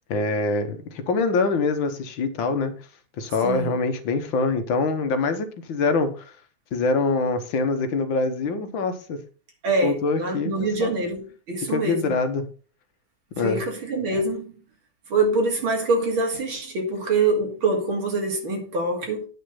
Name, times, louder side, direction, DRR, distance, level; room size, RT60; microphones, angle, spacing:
voice 1, 0.1-2.7 3.2-6.3 6.7-9.2 9.8-10.5 10.8-10.9 11.6-12.5 13.3-13.6, left 3 dB, 70° left, 1.8 m, -24 dB
voice 2, 9.6-11.2 11.5-12.1 13.4-14.6 15.1-19.2, right 3 dB, 80° right, 3.4 m, -24 dB
9.3 x 5.8 x 5.6 m
omnidirectional pair, 2.2 m